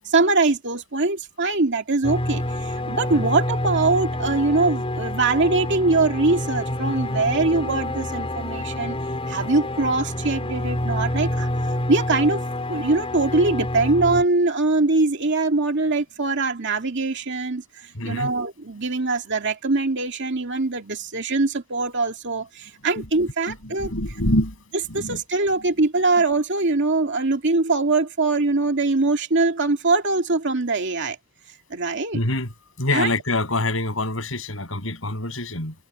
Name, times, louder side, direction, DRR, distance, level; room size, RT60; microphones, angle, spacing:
voice 1, 0.0-9.0 9.3-11.5 11.9-12.4 12.7-17.6 18.0-23.9 24.9-31.2 31.7-32.2 32.9-33.1, right 3 dB, 60° right, 2.3 m, -22 dB
sound 1, 2.0-14.2, left 1 dB, 30° left, 4.8 m, -27 dB
voice 2, 17.9-18.3 23.0-24.6 24.9-25.2 25.5-25.6 32.1-32.5 32.8-35.7, left 1 dB, 70° left, 7.1 m, -26 dB
head